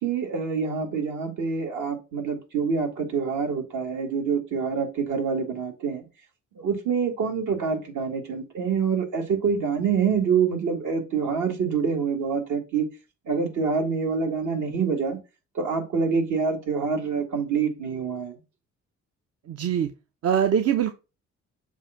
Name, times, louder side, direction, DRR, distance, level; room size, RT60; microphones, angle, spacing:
voice 1, 0.0-6.0 6.6-12.9 13.3-15.2 15.5-18.3, right 5 dB, 75° right, 2.2 m, -26 dB
voice 2, 19.5-19.9 20.2-20.9, right 8 dB, 55° right, 0.7 m, -22 dB
7.1 x 2.7 x 5.7 m
cardioid pair, 90°, 30 cm